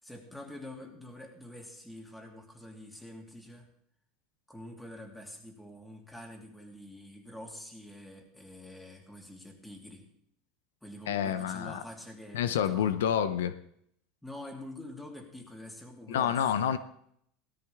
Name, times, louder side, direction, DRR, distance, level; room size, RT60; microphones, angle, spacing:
voice 1, 0.0-3.7 4.5-10.1 10.8-12.9 14.2-16.5, left 1 dB, 5° left, 1 dB, 3.1 m, -46 dB
voice 2, 11.1-11.8 12.3-13.6 16.1-16.8, left 9 dB, 90° left, 12 dB, 0.7 m, -28 dB
17.0 x 13.5 x 3.5 m, 0.68 s
supercardioid pair, 105°, 0 cm